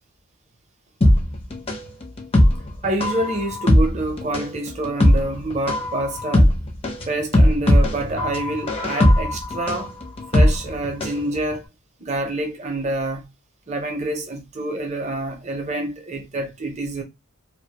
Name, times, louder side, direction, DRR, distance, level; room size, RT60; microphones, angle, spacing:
sound 1, 1.0-11.2 11.5-11.6, left 1 dB, 25° left, 0.5 m, -18 dB
voice 1, 2.8-6.5 7.1-9.9 10.3-11.6 12.0-13.3 13.7-17.0, right 2 dB, 30° right, 0.5 m, -27 dB
2.4 x 2.1 x 2.8 m
head